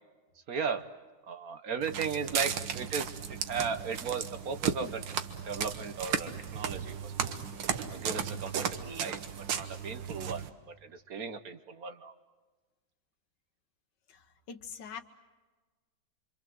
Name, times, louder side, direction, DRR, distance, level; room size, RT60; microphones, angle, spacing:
voice 1, 0.5-0.8 1.3-5.0 5.4-7.4 7.9-9.2 9.5-12.1, right 5 dB, 55° right, 10 dB, 1.4 m, -36 dB
Walk footsteps, 1.8-10.5, right 7 dB, 80° right, 1.9 m, -35 dB
voice 2, 14.1-15.0, left 6 dB, 70° left, 9 dB, 1.8 m, -44 dB
26.5 x 26.0 x 7.7 m, 1.3 s
omnidirectional pair, 2.0 m